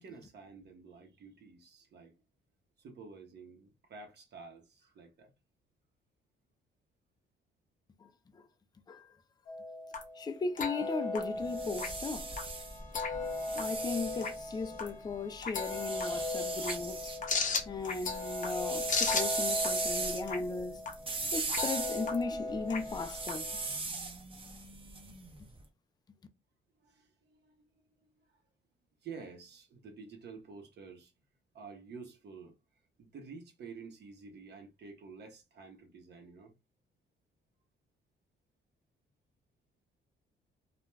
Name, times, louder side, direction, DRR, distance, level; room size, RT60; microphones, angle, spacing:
voice 1, 0.0-2.1 2.8-5.3 13.1-13.7 26.8-27.5 29.0-31.1 31.5-36.5, right 5 dB, 60° right, 0.9 m, -50 dB
voice 2, 8.0-8.5 8.9-9.2 10.2-12.3 13.5-17.1 17.7-20.8 21.3-23.5, left 4 dB, 20° left, 0.4 m, -37 dB
sound 1, 9.5-23.8, left 3 dB, 40° left, 0.7 m, -36 dB
sound 2, 11.4-14.9 15.6-17.2 17.6-25.5, right 3 dB, 25° right, 0.7 m, -38 dB
2.4 x 2.1 x 3.1 m
cardioid pair, 90°, 20 cm